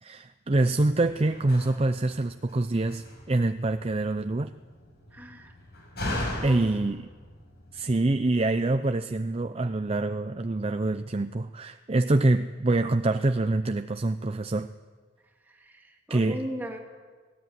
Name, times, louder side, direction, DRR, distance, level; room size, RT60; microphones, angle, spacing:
voice 1, 0.0-4.5 6.4-7.1 7.7-14.7 16.1-16.4, right 2 dB, 30° right, 9 dB, 0.6 m, -25 dB
Slam, 0.5-8.2, left 1 dB, 60° left, 5.9 m, -39 dB
voice 2, 5.1-5.5 6.4-6.7 15.5-16.8, equal, 10° right, 1 dB, 2.9 m, -38 dB
18.5 x 18.5 x 9.5 m, 1.5 s
head